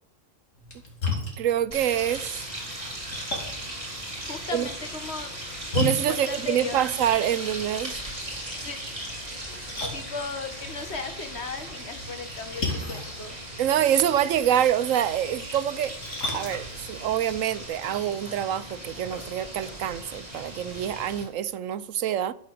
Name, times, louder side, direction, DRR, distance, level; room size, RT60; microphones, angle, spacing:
Splash splatter, 0.5-17.7, left 2 dB, 75° left, 3.2 m, -37 dB
voice 1, 1.4-2.5 4.5-4.6 5.7-7.9 13.6-15.9 16.3-22.3, right 10 dB, 85° right, 1.1 m, -26 dB
sound 1, 1.7-21.2, right 1 dB, 25° right, 3.6 m, -38 dB
voice 2, 4.3-5.3 6.1-6.9 8.4-8.8 9.9-13.4, left 4 dB, 55° left, 1.8 m, -36 dB
12.5 x 8.4 x 6.7 m
omnidirectional pair, 1.3 m